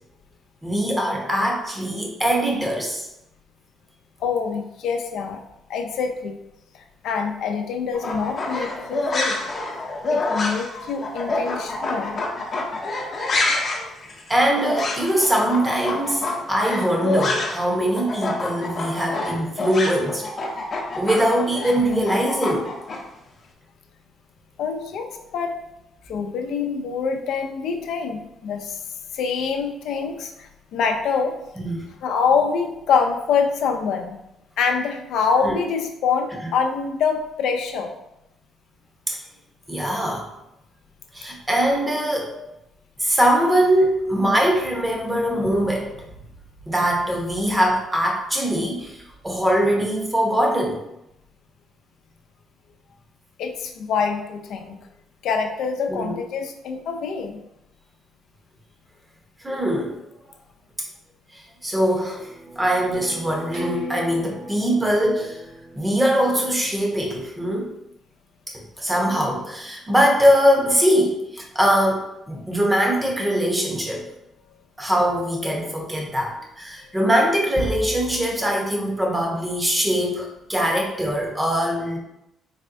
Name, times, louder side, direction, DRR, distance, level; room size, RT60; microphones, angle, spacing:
voice 1, 0.6-3.1 13.8-13.9 14.3-20.3 20.9-22.7 31.6-31.8 35.4-35.6 39.1-39.2 39.7-40.3 41.1-42.3 43.0-45.9 46.7-50.8 55.9-56.2 59.4-60.0 61.3-62.3 62.6-65.4 65.7-67.7 68.5-74.0 74.8-82.0, equal, 10° right, 0 dB, 0.9 m, -22 dB
voice 2, 4.2-5.4 5.7-6.3 7.0-9.4 10.1-12.2 24.6-25.6 26.1-28.8 29.1-31.3 32.0-34.2 34.6-37.9 42.4-42.5 44.1-44.2 53.4-54.8 55.2-57.4, left 5 dB, 75° left, 4 dB, 0.5 m, -25 dB
sound 1, 7.9-17.7 17.9-23.0, left 2 dB, 40° left, 0.7 m, -27 dB
sound 2, 62.1-67.2, right 1 dB, 60° right, 0.8 m, -39 dB
4.1 x 3.3 x 2.6 m, 0.86 s
cardioid pair, 120°, 0 cm